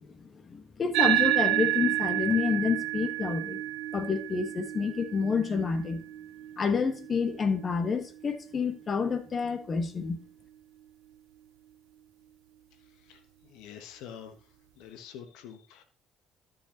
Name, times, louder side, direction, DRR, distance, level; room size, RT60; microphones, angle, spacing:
voice 1, 0.0-3.6 3.9-6.0 6.6-10.2, left 5 dB, 45° left, 1.4 m, -29 dB
sound 1, 0.9-9.7, right 16 dB, 75° right, 0.6 m, -31 dB
voice 2, 13.0-14.5 14.8-15.8, left 9 dB, 75° left, 1.2 m, -47 dB
13.0 x 5.5 x 3.0 m
hypercardioid pair, 50°, 0 cm